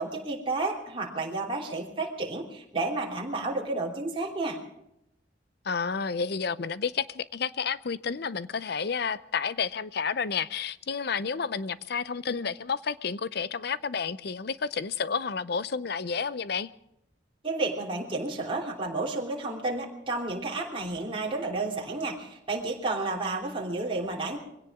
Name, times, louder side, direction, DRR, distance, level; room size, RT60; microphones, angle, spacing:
voice 1, 0.0-4.6 17.4-24.4, right 2 dB, 30° right, 3.2 m, -31 dB
voice 2, 5.6-16.7, left 5 dB, 60° left, 0.6 m, -31 dB
23.5 x 17.0 x 3.7 m
head